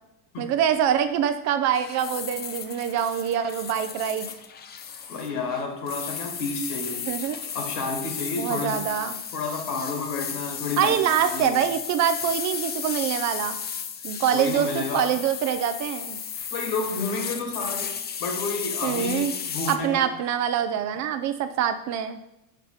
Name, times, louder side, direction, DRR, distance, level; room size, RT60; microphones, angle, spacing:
voice 1, 0.4-4.3 7.0-7.4 8.4-9.2 10.8-13.6 14.0-16.2 18.8-19.3 19.7-22.2, right 9 dB, 40° right, 9 dB, 0.4 m, -25 dB
sound 1, 1.7-19.8, left 7 dB, 20° left, 0.5 m, -34 dB
voice 2, 5.1-7.1 7.5-8.8 9.3-11.6 14.1-15.2 16.5-20.1, left 3 dB, 75° left, 4 dB, 2.0 m, -31 dB
5.8 x 4.9 x 4.7 m, 0.91 s
supercardioid pair, 105°, 47 cm